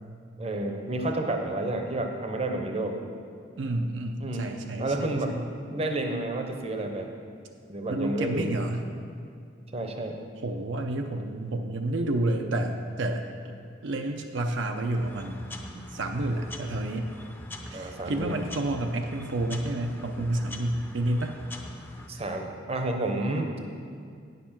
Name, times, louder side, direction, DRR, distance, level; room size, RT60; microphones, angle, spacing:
voice 1, 0.4-3.0 4.2-5.4 5.7-7.1 7.7-8.5 9.7-10.2 17.7-18.5 22.1-23.6, right 2 dB, 30° right, 4 dB, 0.7 m, -30 dB
voice 2, 3.6-5.4 7.9-8.8 10.4-13.3 13.8-15.4 15.9-17.1 17.7-21.4, right 1 dB, 70° right, 4 dB, 0.6 m, -30 dB
sound 1, 14.9-22.1, left 1 dB, 10° left, 0.6 m, -43 dB
9.3 x 6.8 x 5.8 m, 2.3 s
head